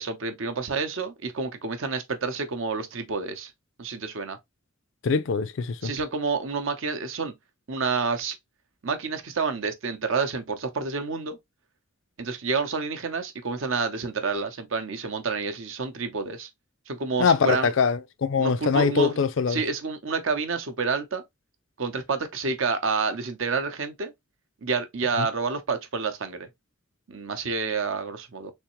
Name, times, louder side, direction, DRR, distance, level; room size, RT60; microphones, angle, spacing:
voice 1, 0.0-3.5 3.8-4.4 5.8-7.4 7.7-8.4 8.8-11.4 12.2-16.5 16.9-17.7 18.4-19.2 19.5-21.2 21.8-24.1 24.6-26.5 27.1-28.5, right 4 dB, 65° right, 0.8 m, -29 dB
voice 2, 5.0-5.9 17.2-19.6 25.2-25.3, left 5 dB, 60° left, 0.4 m, -23 dB
3.5 x 3.2 x 3.0 m
head